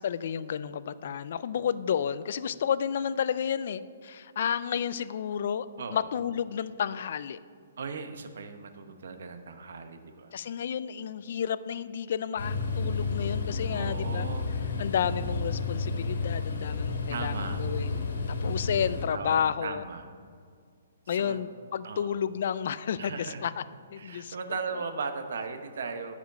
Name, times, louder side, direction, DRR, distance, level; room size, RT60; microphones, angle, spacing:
voice 1, 0.0-7.4 10.3-14.3 14.8-18.1 18.4-19.8 21.1-23.5 23.9-24.4, left 8 dB, 50° left, 16 dB, 0.3 m, -31 dB
voice 2, 7.8-10.3 13.7-14.5 17.1-17.6 19.1-20.1 21.1-21.5 21.8-22.2 23.0-23.4 24.0-26.1, right 5 dB, 65° right, 8 dB, 0.9 m, -37 dB
sound 1, 12.4-19.0, left 4 dB, 90° left, 1.8 m, -31 dB
10.0 x 5.0 x 6.6 m, 2.2 s
hypercardioid pair, 165°, 0 cm